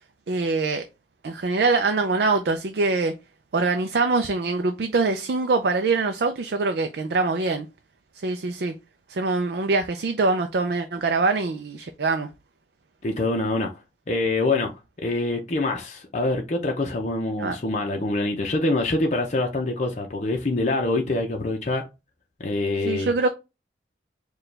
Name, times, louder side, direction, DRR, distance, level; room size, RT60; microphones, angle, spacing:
voice 1, 0.3-0.8 1.2-3.1 3.5-7.7 8.2-8.7 9.1-12.3 17.4-17.6 22.8-23.3, right 3 dB, 60° right, 0.4 m, -23 dB
voice 2, 13.0-13.7 14.1-14.7 15.0-21.9 22.4-23.1, left 2 dB, 40° left, 0.6 m, -25 dB
4.8 x 2.3 x 3.2 m
head